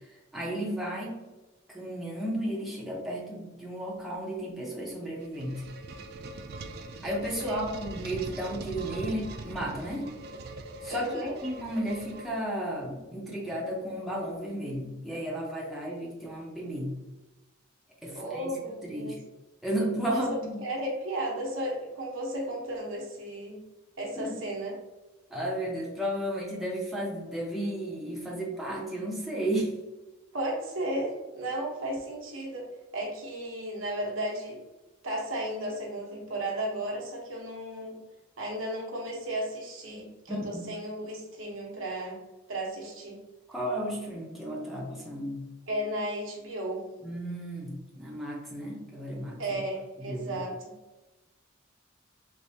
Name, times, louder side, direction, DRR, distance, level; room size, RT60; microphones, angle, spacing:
voice 1, 0.3-1.2 1.7-5.6 7.0-10.1 10.8-17.0 18.0-18.6 18.8-19.2 19.6-20.6 24.2-24.4 25.3-29.7 40.3-40.7 43.5-45.5 47.0-49.4 50.0-50.4, right 1 dB, ahead, -5 dB, 0.6 m, -33 dB
sound 1, 5.0-12.7, right 2 dB, 50° right, 0.3 m, -42 dB
voice 2, 10.9-11.3 18.1-19.2 20.1-20.3 20.6-23.6 24.0-24.8 30.3-34.6 35.0-38.0 38.4-42.2 42.5-43.2 45.7-46.9 49.4-50.7, right 1 dB, 75° right, -2 dB, 1.0 m, -34 dB
3.4 x 3.1 x 2.7 m, 1.1 s
head